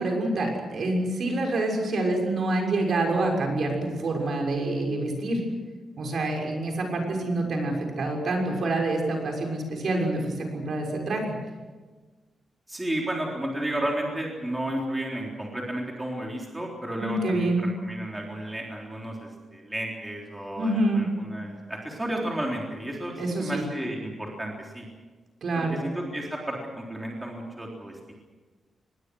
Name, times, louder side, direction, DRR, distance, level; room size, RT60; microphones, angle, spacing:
voice 1, 0.0-5.4 6.0-11.2 17.0-17.7 20.6-21.1 23.2-23.6 25.4-25.8, right 2 dB, 55° right, 1 dB, 6.3 m, -27 dB
voice 2, 12.7-24.9 25.5-28.1, right 1 dB, 10° right, -1 dB, 3.8 m, -33 dB
26.0 x 21.0 x 6.4 m, 1.3 s
wide cardioid pair, 160°, 0 cm